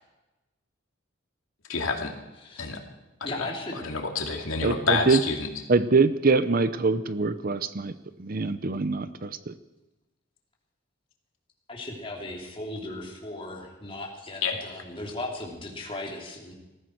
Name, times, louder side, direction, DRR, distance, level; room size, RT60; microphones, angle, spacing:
voice 1, 1.7-2.1 2.6-2.8 3.8-5.5 14.4-14.6, left 4 dB, 90° left, 2 dB, 2.5 m, -28 dB
voice 2, 2.4-2.7 3.2-3.8 11.7-16.5, left 2 dB, 25° left, -1 dB, 3.1 m, -37 dB
voice 3, 4.6-5.2 5.7-7.9 8.2-9.5, right 3 dB, 45° right, 13 dB, 0.7 m, -24 dB
19.5 x 14.5 x 4.6 m, 1.1 s
head